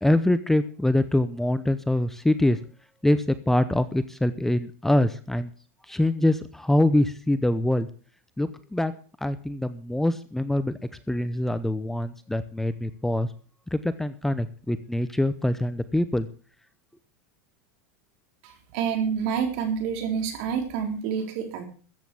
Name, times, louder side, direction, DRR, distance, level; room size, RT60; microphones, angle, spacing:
voice 1, 0.0-2.6 3.0-5.5 5.9-7.9 8.4-8.9 9.2-10.8 11.1-13.3 13.7-16.3, left 1 dB, 5° left, 12 dB, 0.7 m, -24 dB
voice 2, 18.4-21.7, right 7 dB, 60° right, 6 dB, 4.1 m, -28 dB
14.0 x 8.3 x 7.0 m, 0.40 s
supercardioid pair, 140°, 8 cm